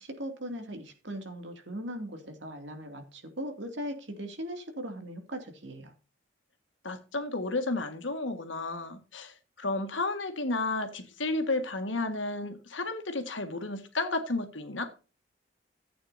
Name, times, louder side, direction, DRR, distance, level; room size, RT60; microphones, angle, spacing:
voice 1, 0.0-5.9, equal, 70° right, 2.5 m, -39 dB
voice 2, 6.8-14.9, left 2 dB, 80° left, 1.7 m, -32 dB
15.0 x 8.7 x 2.7 m
head